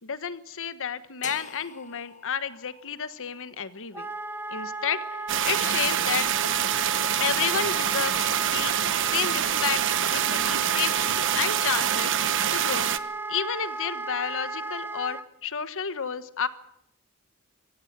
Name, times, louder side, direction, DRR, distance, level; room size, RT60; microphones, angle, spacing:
voice 1, 0.0-4.1 4.5-5.0 5.4-6.3 7.2-8.7 9.0-12.2 12.5-12.9 13.3-16.5, left 7 dB, 65° left, 13 dB, 1.3 m, -31 dB
sound 1, 1.2-5.3, left 6 dB, 35° left, 1.7 m, -46 dB
Wind instrument woodwind instrument, 3.9-15.3, right 3 dB, 10° right, 1.1 m, -35 dB
sound 2, 5.3-13.0, right 10 dB, 60° right, 1.0 m, -26 dB
24.5 x 17.0 x 7.5 m, 0.78 s
head